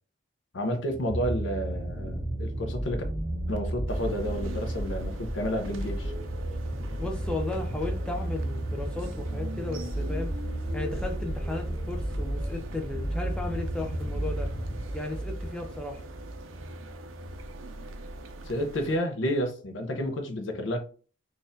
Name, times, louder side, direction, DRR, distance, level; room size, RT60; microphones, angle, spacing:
voice 1, 0.5-3.0 3.5-6.1 18.4-20.8, equal, 75° left, 0.7 m, -30 dB
sound 1, 0.9-16.5 17.3-17.4, right 1 dB, 40° right, 0.6 m, -33 dB
sound 2, 3.9-19.0, right 1 dB, 85° right, 0.5 m, -42 dB
voice 2, 7.0-10.3 10.7-14.5 14.9-16.0, left 2 dB, 5° left, 0.4 m, -35 dB
4.0 x 2.5 x 2.6 m
head